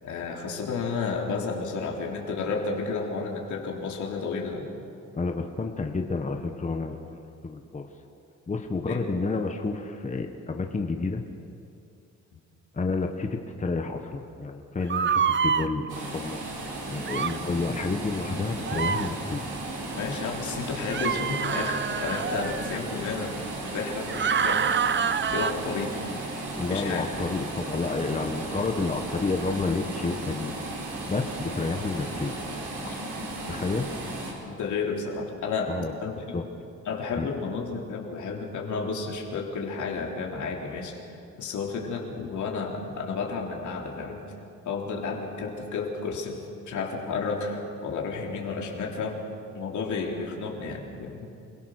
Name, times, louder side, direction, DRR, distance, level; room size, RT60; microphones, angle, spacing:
voice 1, 0.0-4.7 8.8-9.2 19.9-23.5 23.7-24.9 25.3-26.0 26.7-27.0 32.8-32.9 34.5-35.7 36.0-36.3 36.9-44.2 44.7-46.4 46.7-49.2 49.5-51.3, left 4 dB, 75° left, 0 dB, 3.7 m, -32 dB
voice 2, 5.1-7.9 8.5-11.2 12.7-16.4 16.9-19.4 26.6-30.5 31.1-32.4 33.5-33.9 35.7-35.9 36.3-36.4 37.2-37.3, left 3 dB, 25° left, 4 dB, 1.4 m, -30 dB
sound 1, 14.9-15.7 17.1-17.4 18.7-19.1 20.9-22.7 24.1-25.5, right 7 dB, 40° right, 0.9 m, -26 dB
sound 2, 15.9-34.3, right 2 dB, 85° right, 4.8 m, -35 dB
28.0 x 17.0 x 6.6 m, 2.7 s
cardioid pair, 90°, 30 cm